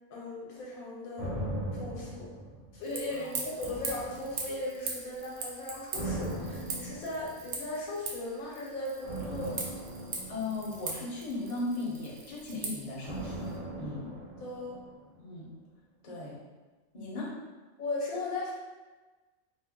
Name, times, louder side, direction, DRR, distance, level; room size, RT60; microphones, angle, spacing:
voice 1, 0.1-1.3 1.7-2.3 2.7-9.5 14.4-14.8 17.8-18.5, left 2 dB, 80° left, -4 dB, 1.2 m, -37 dB
sound 1, 1.2-3.1 3.6-4.8 5.9-7.6 9.0-11.4 13.0-15.2 15.5-15.6, right 1 dB, 50° right, 0.4 m, -39 dB
sound 2, 2.8-13.6, right 4 dB, 70° right, 0.9 m, -41 dB
voice 2, 10.3-13.5 13.8-14.1 15.2-15.5 16.0-16.4 16.9-17.4, left 2 dB, 40° left, -6 dB, 0.7 m, -37 dB
2.7 x 2.0 x 3.5 m, 1.3 s
omnidirectional pair, 1.5 m